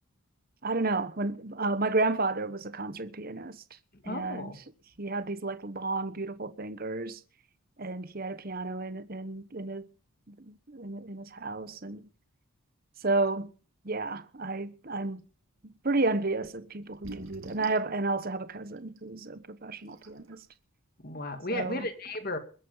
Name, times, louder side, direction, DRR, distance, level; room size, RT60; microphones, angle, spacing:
voice 1, 0.6-3.6 4.1-4.5 5.0-7.2 7.8-9.8 10.3-12.0 13.0-13.5 13.8-15.2 15.6-20.4 21.5-21.9, right 3 dB, 40° right, 1.0 m, -32 dB
voice 2, 4.0-4.6 21.0-22.4, left 1 dB, 45° left, 2.3 m, -34 dB
sound 1, 16.4-16.5 16.9-17.9 19.0-19.1 19.6-19.7 19.9-20.3, right 2 dB, 65° right, 2.4 m, -43 dB
21.5 x 9.2 x 5.6 m
head